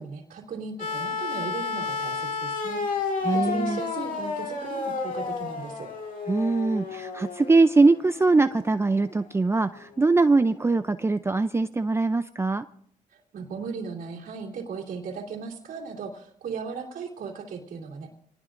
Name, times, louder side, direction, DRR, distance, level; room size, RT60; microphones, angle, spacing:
voice 1, 0.0-2.8 3.2-5.9 13.1-18.1, right 5 dB, 85° right, -2 dB, 2.9 m, -37 dB
sound 1, 0.8-8.9 10.1-10.2, left 4 dB, 70° left, 2.3 m, -31 dB
voice 2, 3.2-3.8 6.3-12.6, right 3 dB, 20° right, 10 dB, 0.5 m, -22 dB
27.5 x 19.0 x 2.6 m, 0.69 s
cardioid pair, 90°, 14 cm